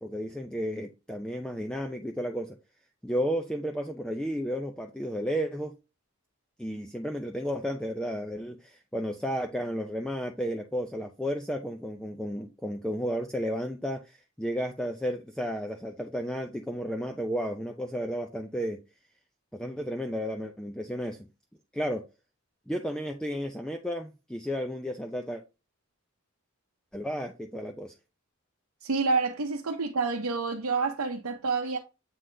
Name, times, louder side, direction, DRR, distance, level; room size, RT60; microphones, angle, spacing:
voice 1, 0.0-2.6 3.0-5.7 6.6-18.8 19.5-21.3 21.7-22.0 22.7-25.4 26.9-27.9, equal, 5° left, 0.4 m, -33 dB
voice 2, 28.8-31.8, right 4 dB, 75° right, 0.8 m, -28 dB
7.7 x 3.9 x 3.3 m
head